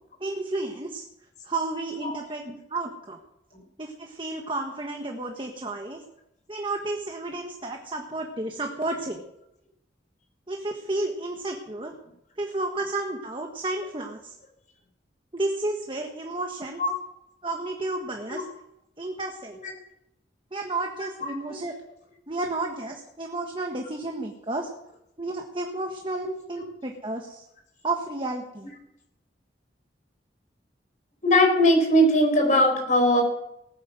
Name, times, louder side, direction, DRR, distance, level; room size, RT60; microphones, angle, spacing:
voice 1, 0.2-1.0 1.4-3.2 3.8-6.0 6.5-9.2 10.5-11.9 12.4-14.3 15.3-16.8 17.4-18.4 19.0-19.6 20.5-21.7 22.3-24.7 25.2-27.4 27.8-28.7, right 2 dB, 30° right, 2 dB, 1.4 m, -32 dB
voice 2, 31.2-33.2, equal, 45° left, 2 dB, 4.6 m, -19 dB
18.5 x 9.6 x 6.2 m, 0.83 s
head